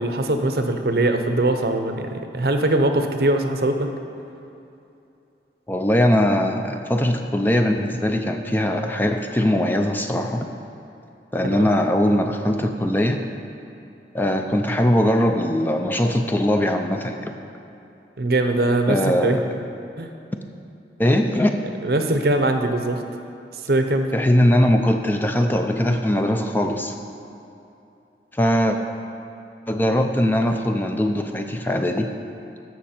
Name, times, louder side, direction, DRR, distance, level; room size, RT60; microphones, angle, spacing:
voice 1, 0.0-3.9 11.5-11.7 18.2-19.4 20.0-20.1 21.8-23.0 23.7-24.1, right 2 dB, 60° right, 6 dB, 0.7 m, -21 dB
voice 2, 5.7-10.5 11.3-13.2 14.1-17.3 18.9-19.5 21.0-21.5 24.1-27.0 28.3-28.8 29.7-32.1, left 1 dB, 10° left, 5 dB, 0.4 m, -20 dB
13.5 x 6.1 x 4.4 m, 2.8 s
head